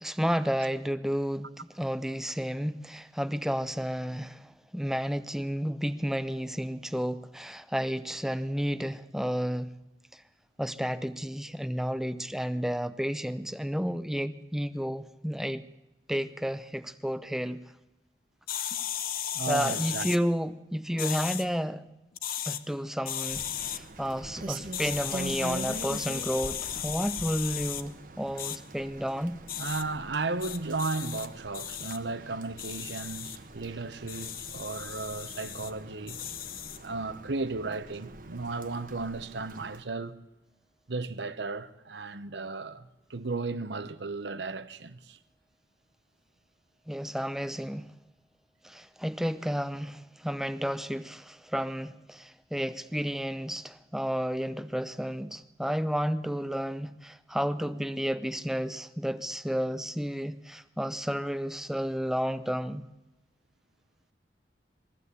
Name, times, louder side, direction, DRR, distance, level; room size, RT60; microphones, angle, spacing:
voice 1, 0.0-9.7 10.1-10.2 10.6-15.6 16.1-17.6 19.5-21.8 22.5-29.4 46.9-47.9 48.6-62.8, equal, ahead, 0.7 m, -31 dB
sound 1, 18.5-20.2 21.0-21.4 22.1-22.6 23.0-23.8 24.7-27.8 28.4-28.6 29.5-29.8 30.4-31.3 31.5-32.0 32.6-33.4 34.1-35.7 36.1-36.8, left 10 dB, 55° left, 0.9 m, -35 dB
voice 2, 19.3-20.1 29.6-36.2 36.8-40.2 40.9-45.2, right 3 dB, 75° right, 1.0 m, -35 dB
Rain, 23.3-39.8, right 2 dB, 50° right, 1.2 m, -44 dB
21.5 x 15.0 x 8.3 m
head